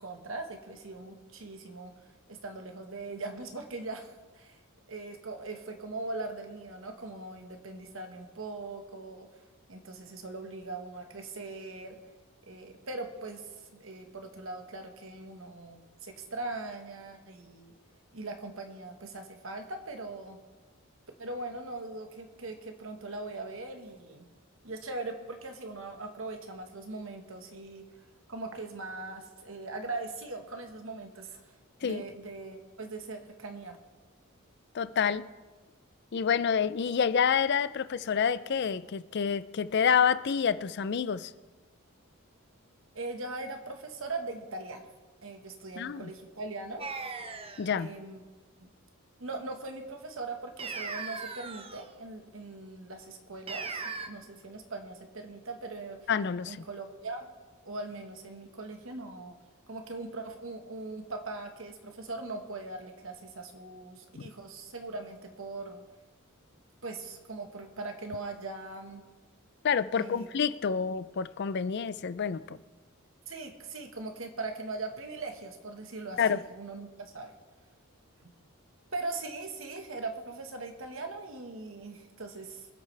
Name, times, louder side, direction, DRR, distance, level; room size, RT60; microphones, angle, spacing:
voice 1, 0.0-1.9 2.3-4.6 4.9-9.3 9.7-12.0 12.5-13.4 13.7-17.7 18.1-20.4 21.2-24.2 24.6-27.8 28.3-31.4 31.8-33.8 42.9-44.9 45.2-46.9 47.8-48.2 48.6-48.7 49.2-56.1 56.5-57.3 57.6-59.4 59.7-65.8 66.8-69.0 69.9-70.3 73.3-77.3 78.9-82.7, right 3 dB, 65° right, 5 dB, 1.4 m, -40 dB
voice 2, 34.7-35.3 36.1-41.3 45.8-46.1 47.6-47.9 56.1-56.6 64.2-64.3 69.6-72.6 76.2-76.4, left 7 dB, 50° left, 15 dB, 0.4 m, -28 dB
sound 1, 46.8-47.7 50.6-51.9 53.5-54.1, right 4 dB, 25° right, 0.7 m, -38 dB
24.5 x 8.2 x 3.3 m, 1.3 s
head